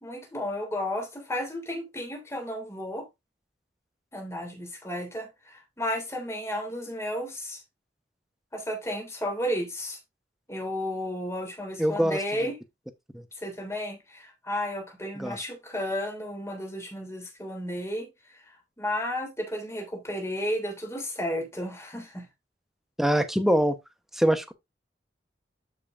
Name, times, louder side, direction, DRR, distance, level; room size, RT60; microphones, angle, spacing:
voice 1, 0.0-3.1 4.1-7.6 8.5-10.0 10.5-12.6 13.4-22.3, left 1 dB, 15° left, 3.0 m, -33 dB
voice 2, 11.8-12.5 13.1-13.2 15.2-15.4 23.0-23.8 24.1-24.5, equal, ahead, 1.0 m, -24 dB
12.0 x 5.4 x 2.6 m
head